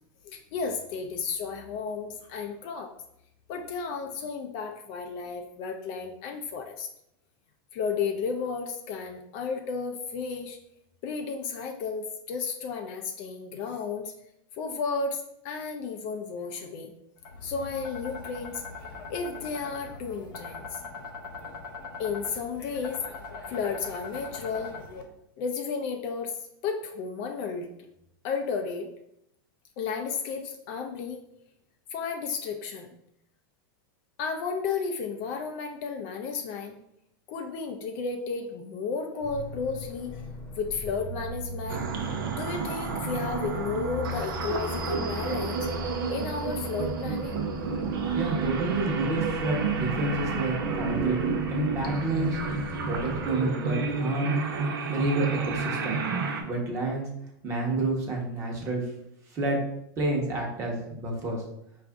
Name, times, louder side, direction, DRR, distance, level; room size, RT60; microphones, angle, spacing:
voice 1, 0.2-2.9 3.5-6.9 7.7-10.6 11.0-14.1 14.5-16.9 17.4-18.6 19.1-20.8 22.0-23.0 23.5-24.7 25.4-27.7 28.2-28.9 29.8-31.2 31.9-32.9 34.2-36.8 37.3-40.3 40.6-41.9 42.3-45.7 46.1-47.4 48.1-48.2, left 5 dB, 40° left, 4 dB, 0.4 m, -33 dB
sound 1, 17.2-25.0, left 3 dB, 70° left, 0.9 m, -41 dB
sound 2, 39.2-53.3, left 2 dB, 25° left, 0.9 m, -39 dB
sound 3, 41.7-56.4, right 5 dB, 85° right, 0.7 m, -30 dB
voice 2, 48.1-51.2 51.5-52.4 52.9-54.3 54.9-56.0 56.4-57.1 57.4-58.8 59.3-59.6 60.0-61.4, right 2 dB, 25° right, 0 dB, 1.0 m, -29 dB
4.7 x 2.5 x 3.5 m, 0.78 s
supercardioid pair, 155°, 11 cm